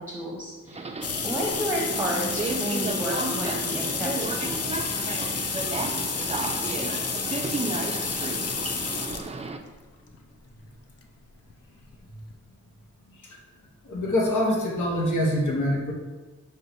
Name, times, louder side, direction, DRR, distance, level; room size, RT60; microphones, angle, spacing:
voice 1, 0.0-4.6, equal, 5° right, -3 dB, 0.7 m, -32 dB
Subway metro underground, 0.7-9.6, right 3 dB, 20° right, 0.3 m, -32 dB
sound 1, 1.0-9.3 10.1-10.2 11.5-11.6 11.9-12.0 12.3-12.4, left 6 dB, 55° left, 0.5 m, -30 dB
voice 2, 13.8-15.9, left 1 dB, 85° left, -1 dB, 0.8 m, -25 dB
5.4 x 2.2 x 3.9 m, 1.3 s
cardioid pair, 50°, 30 cm